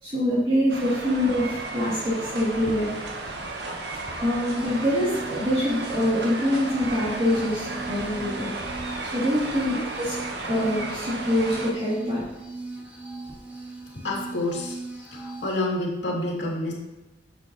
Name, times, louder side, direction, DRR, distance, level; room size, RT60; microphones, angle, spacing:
voice 1, 0.0-2.9 4.2-8.5 9.1-10.2 10.5-12.2, left 1 dB, 30° right, -10 dB, 2.5 m, -25 dB
sound 1, 0.7-11.7, right 2 dB, 65° right, 1.0 m, -34 dB
sound 2, 4.5-15.6, right 3 dB, 10° right, 1.0 m, -39 dB
voice 2, 14.0-14.8 15.1-16.7, left 1 dB, 85° left, -3 dB, 2.3 m, -28 dB
9.3 x 6.9 x 2.9 m, 1.1 s
head